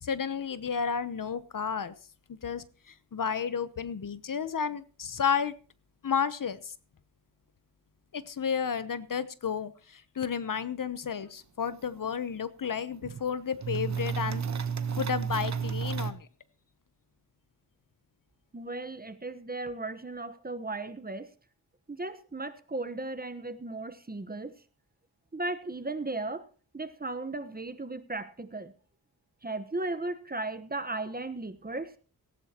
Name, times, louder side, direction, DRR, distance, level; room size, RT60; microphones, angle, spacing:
voice 1, 0.0-1.9 2.3-5.5 6.0-6.7 8.1-14.4 15.0-16.3, left 7 dB, 55° left, 14 dB, 0.9 m, -32 dB
sound 1, 11.7-11.8 12.0-12.1 12.6-13.2 13.6-16.1, right 6 dB, 45° right, 1.1 m, -32 dB
voice 2, 18.5-21.3 21.9-24.5 25.3-26.4 26.7-28.7 29.4-31.9, right 2 dB, 25° right, 11 dB, 1.1 m, -36 dB
17.5 x 15.0 x 2.9 m, 0.38 s
cardioid pair, 65°, 39 cm